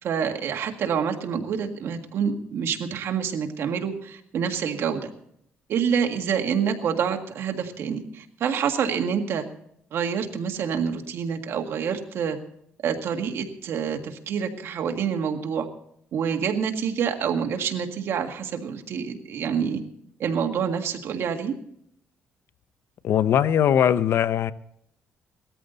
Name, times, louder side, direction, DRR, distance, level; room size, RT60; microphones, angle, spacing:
voice 1, 0.0-5.1 5.7-9.5 9.9-12.4 12.8-15.7 16.1-19.8 20.2-21.5, right 7 dB, 70° right, 5 dB, 1.8 m, -27 dB
voice 2, 23.0-24.5, left 9 dB, 65° left, 15 dB, 0.7 m, -20 dB
18.5 x 13.5 x 4.0 m, 0.71 s
cardioid pair, 110°, 4 cm